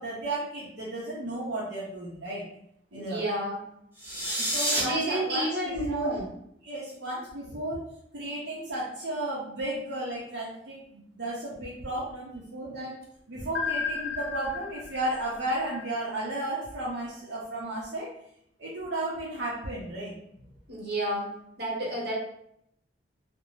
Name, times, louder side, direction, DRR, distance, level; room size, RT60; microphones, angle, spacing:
voice 1, 0.0-2.4 2.9-3.2 4.4-6.2 6.6-7.8 8.1-13.0 13.3-18.1 18.6-20.2, right 1 dB, 80° right, -7 dB, 0.6 m, -33 dB
voice 2, 2.9-3.6 4.8-6.2 20.7-21.3 21.6-22.1, right 1 dB, 60° right, -4 dB, 1.0 m, -30 dB
sound 1, 3.9-4.8, right 1 dB, 10° right, 0.8 m, -28 dB
sound 2, 13.5-16.5, left 5 dB, 70° left, 0.4 m, -35 dB
2.5 x 2.0 x 3.0 m, 0.72 s
head